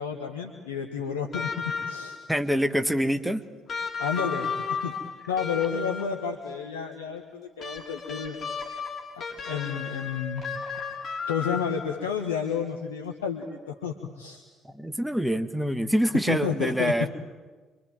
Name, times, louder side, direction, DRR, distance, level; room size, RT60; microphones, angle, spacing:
voice 1, 0.0-2.2 4.0-4.5 4.8-4.9 5.3-8.7 9.2-10.4 11.3-14.4 16.3-16.9, left 7 dB, 80° left, 3 dB, 1.4 m, -31 dB
sound 1, 1.3-2.3 3.7-6.3 7.6-12.1 13.4-13.5, left 5 dB, 40° left, 5.4 m, -34 dB
voice 2, 2.3-3.4 14.7-17.1, equal, ahead, 9 dB, 1.7 m, -25 dB
26.5 x 24.0 x 9.1 m, 1.4 s
figure-of-eight pair, 50°, 0 cm